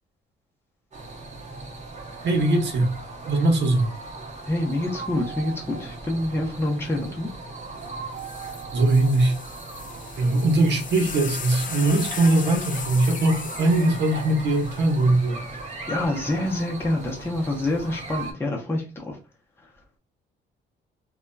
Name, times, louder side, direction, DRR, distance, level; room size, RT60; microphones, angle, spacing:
sound 1, 0.9-18.3, right 3 dB, 35° right, 0.9 m, -38 dB
voice 1, 2.2-2.9 3.3-3.9 8.7-9.4 10.2-15.5, right 2 dB, 60° right, 1.0 m, -21 dB
voice 2, 4.4-7.3 15.9-19.2, left 1 dB, 10° left, 0.7 m, -27 dB
sound 2, 7.8-7.9 8.2-15.6 16.5-16.9, left 7 dB, 40° left, 0.4 m, -38 dB
2.7 x 2.3 x 2.2 m
cardioid pair, 90°, 20 cm